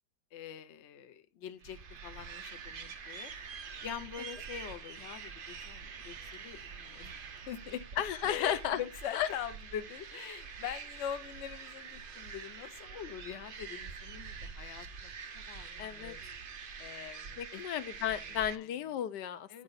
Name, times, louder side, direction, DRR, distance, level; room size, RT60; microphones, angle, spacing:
voice 1, 0.3-3.3 3.8-7.1 7.5-7.8 8.2-16.2 16.8-17.6 18.0-18.7 19.5-19.6, left 9 dB, 60° left, 0.8 m, -43 dB
sound 1, 1.6-18.6, right 5 dB, 65° right, 0.5 m, -46 dB
voice 2, 8.0-8.8 9.1-9.3 15.8-16.1 17.4-19.6, left 10 dB, 75° left, 1.2 m, -34 dB
8.9 x 4.9 x 4.0 m
omnidirectional pair, 1.9 m